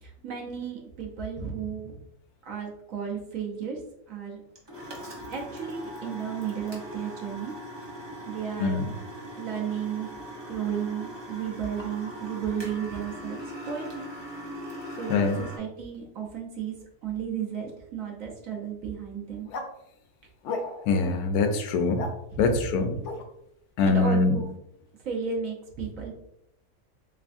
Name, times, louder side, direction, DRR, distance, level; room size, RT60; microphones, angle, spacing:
voice 1, 0.0-2.0 2.4-3.8 4.1-4.4 5.3-7.5 8.3-8.8 9.3-10.1 10.5-14.1 14.9-16.8 17.0-19.5 22.3-22.7 23.8-24.5 25.0-26.1, right 7 dB, 65° right, -1 dB, 1.0 m, -33 dB
sound 1, 4.5-15.6, equal, 30° right, 0.5 m, -40 dB
voice 2, 15.1-15.4 20.9-22.1 22.4-22.9 23.8-24.3, left 4 dB, 85° left, 6 dB, 1.1 m, -23 dB
sound 2, 19.5-19.7 20.4-21.0 21.7-22.1 23.0-23.2, left 3 dB, 65° left, 0.8 m, -34 dB
3.5 x 3.2 x 2.5 m, 0.79 s
omnidirectional pair, 1.6 m